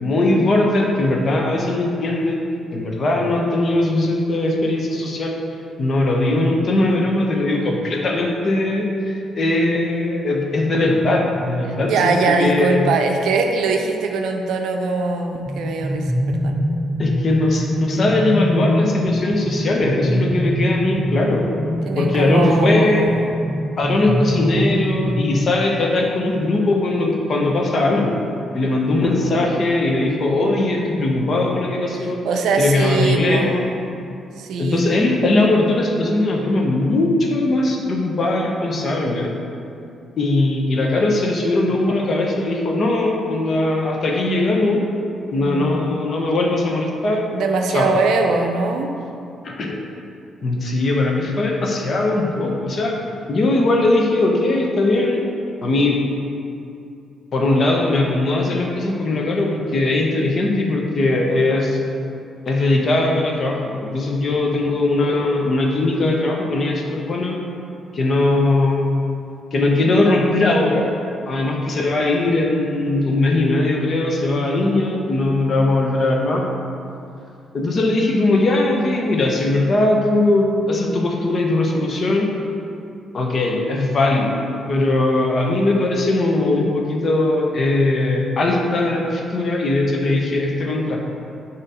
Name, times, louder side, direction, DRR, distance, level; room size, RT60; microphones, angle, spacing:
voice 1, 0.0-2.4 2.7-5.4 5.8-12.9 17.0-21.5 22.0-23.1 23.8-28.2 28.5-32.2 32.6-33.7 34.6-39.3 40.2-44.8 45.3-47.2 47.7-47.9 49.4-49.7 50.4-52.9 53.3-55.2 55.6-56.0 57.3-61.8 62.5-67.4 67.9-68.9 69.5-70.9 71.3-76.4 77.5-82.3 83.1-84.4 84.7-91.0, left 2 dB, 50° left, 0 dB, 0.9 m, -19 dB
voice 2, 11.7-16.6 21.8-23.4 32.2-33.5 34.4-35.0 45.4-46.0 47.3-48.9, right 4 dB, 70° right, 4 dB, 0.5 m, -22 dB
sound 1, 15.3-25.8, equal, 10° right, 0.5 m, -23 dB
6.5 x 3.0 x 4.9 m, 2.6 s
hypercardioid pair, 45°, 0 cm